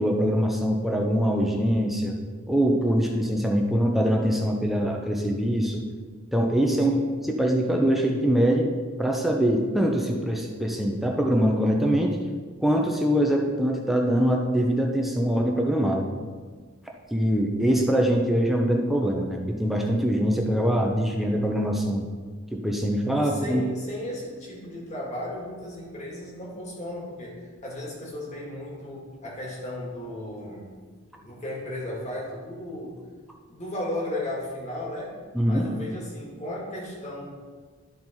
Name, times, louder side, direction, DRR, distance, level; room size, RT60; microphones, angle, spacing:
voice 1, 0.0-2.1 2.5-5.8 6.3-8.7 9.0-12.2 12.6-16.0 17.1-22.0 22.5-23.6 35.3-35.7, equal, ahead, 0 dB, 0.7 m, -23 dB
voice 2, 23.1-30.7 31.1-33.0 33.5-35.1 35.5-37.3, left 1 dB, 35° left, -4 dB, 2.1 m, -35 dB
12.0 x 4.1 x 4.5 m, 1.5 s
head